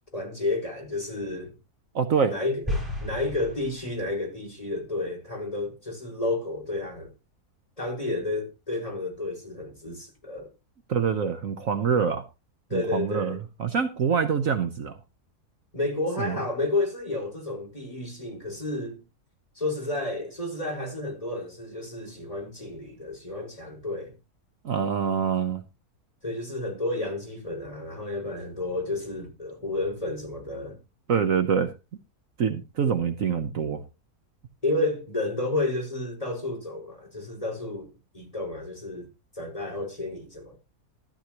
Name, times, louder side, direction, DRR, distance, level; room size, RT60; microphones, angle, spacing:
voice 1, 0.1-1.5 2.3-7.1 7.8-10.5 12.7-13.4 15.7-19.0 19.5-24.1 26.2-30.8 34.6-39.1 39.3-40.6, left 2 dB, 20° left, 5.2 m, -31 dB
voice 2, 1.9-2.3 10.9-12.2 12.7-15.0 16.2-16.4 24.6-25.6 31.1-31.7 32.4-33.8, right 6 dB, 60° right, 1.3 m, -25 dB
sound 1, 2.7-4.3, left 1 dB, ahead, 8.0 m, -33 dB
13.0 x 13.0 x 3.0 m
omnidirectional pair, 1.6 m